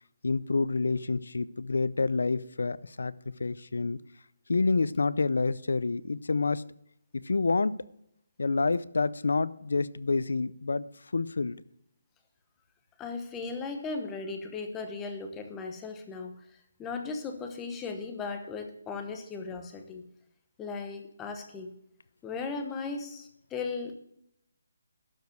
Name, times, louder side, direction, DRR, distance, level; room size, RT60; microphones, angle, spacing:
voice 1, 0.2-3.1 3.4-4.0 4.5-6.6 7.2-7.8 8.4-10.8 11.1-11.6, left 3 dB, 80° left, 18 dB, 0.6 m, -28 dB
voice 2, 13.0-16.4 16.8-20.0 20.6-21.7 22.2-23.9, left 4 dB, 10° left, 5 dB, 0.9 m, -37 dB
12.0 x 5.1 x 7.9 m, 0.73 s
hypercardioid pair, 175°, 0 cm